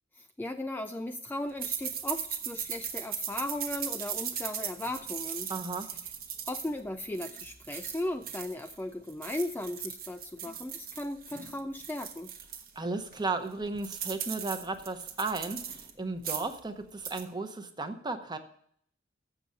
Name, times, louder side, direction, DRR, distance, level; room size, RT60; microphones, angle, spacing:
voice 1, 0.2-5.5 6.5-12.3, left 1 dB, 10° left, 6 dB, 0.3 m, -36 dB
sound 1, 1.6-8.8 9.1-12.7 13.1-13.2 13.5-15.9 16.2-16.6 16.9-17.2, right 8 dB, 50° right, 1.0 m, -38 dB
voice 2, 5.5-5.9 12.8-18.4, right 3 dB, 20° right, 8 dB, 0.8 m, -35 dB
7.1 x 6.9 x 7.6 m, 0.65 s
head